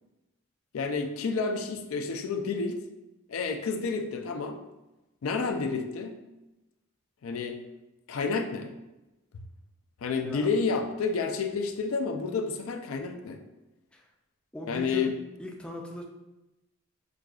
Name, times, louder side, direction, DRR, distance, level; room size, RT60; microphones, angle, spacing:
voice 1, 0.7-2.8 3.3-4.6 5.2-6.1 7.2-7.6 8.1-8.7 9.3-9.4 10.0-13.4 14.7-15.1, left 4 dB, 80° left, 5 dB, 0.4 m, -30 dB
voice 2, 14.5-15.1 15.4-16.0, left 1 dB, 5° left, -1 dB, 0.3 m, -39 dB
6.2 x 2.3 x 2.4 m, 1.0 s
head